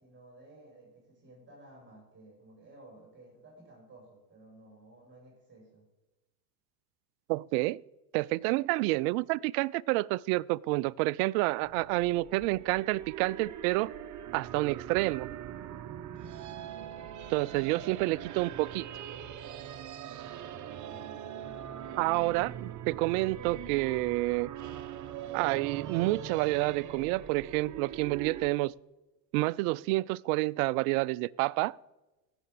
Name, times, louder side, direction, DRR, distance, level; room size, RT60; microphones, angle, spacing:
voice 1, 0.0-5.9 20.5-22.1, right 2 dB, 25° right, 6.0 m, -55 dB
voice 2, 7.3-7.8 8.1-13.9 14.3-15.3 17.3-19.0 22.0-24.5 25.3-28.7 29.3-31.8, right 21 dB, 65° right, 0.5 m, -29 dB
sound 1, 11.6-28.5, right 9 dB, 40° right, 1.2 m, -42 dB
16.0 x 7.0 x 8.1 m
hypercardioid pair, 80°, 47 cm